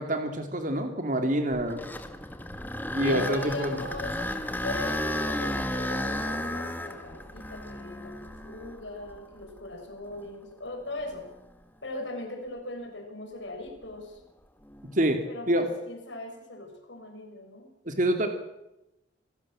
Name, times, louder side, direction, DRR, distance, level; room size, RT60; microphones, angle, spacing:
voice 1, 0.0-1.8 2.9-3.7 14.9-15.2 15.5-15.7 17.8-18.3, right 1 dB, 45° right, 6 dB, 2.7 m, -26 dB
sound 1, 1.5-9.6 10.2-10.3 11.0-11.1 14.7-15.0, left 1 dB, 10° left, 1.7 m, -33 dB
voice 2, 3.0-4.2 4.6-11.3 11.8-14.2 15.3-18.0, left 2 dB, 70° left, 3 dB, 6.0 m, -39 dB
27.0 x 17.5 x 7.5 m, 0.90 s
head